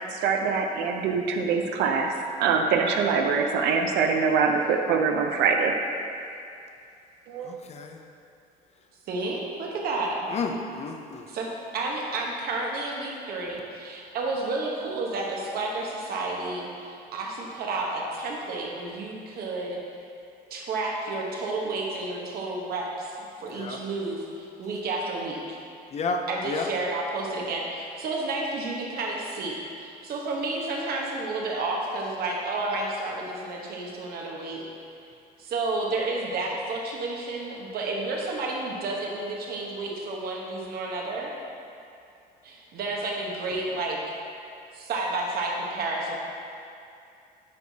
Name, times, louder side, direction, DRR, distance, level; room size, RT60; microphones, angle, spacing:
voice 1, 0.0-2.1 2.4-5.7 7.3-7.6, right 5 dB, 85° right, 3 dB, 0.6 m, -24 dB
voice 2, 7.4-8.0 10.3-11.3 23.5-23.8 25.9-26.2 26.5-26.7, left 4 dB, 40° left, 4 dB, 0.6 m, -31 dB
voice 3, 9.1-10.2 11.3-19.8 20.5-25.6 26.3-34.7 35.4-41.3 42.4-44.0 44.7-46.2, right 2 dB, 65° right, -1 dB, 1.1 m, -31 dB
9.6 x 4.7 x 2.8 m, 2.5 s
cardioid pair, 110°, 17 cm